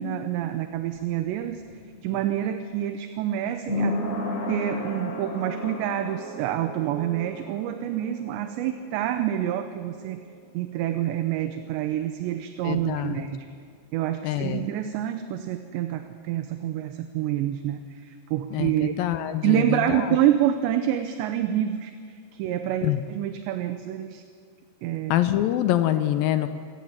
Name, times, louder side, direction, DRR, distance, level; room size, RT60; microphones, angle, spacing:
voice 1, 0.0-1.6 2.0-3.9 4.5-10.2 10.5-13.5 13.9-18.9 19.4-24.2 24.8-25.1, right 11 dB, 80° right, 8 dB, 3.0 m, -27 dB
sound 1, 0.7-12.1 12.4-12.5, left 1 dB, 35° left, 5.5 m, -35 dB
voice 2, 12.6-13.3 14.2-14.7 18.5-20.2 22.8-23.0 25.1-26.5, left 13 dB, 85° left, 10 dB, 2.1 m, -25 dB
27.0 x 16.5 x 7.4 m, 2.1 s
omnidirectional pair, 5.2 m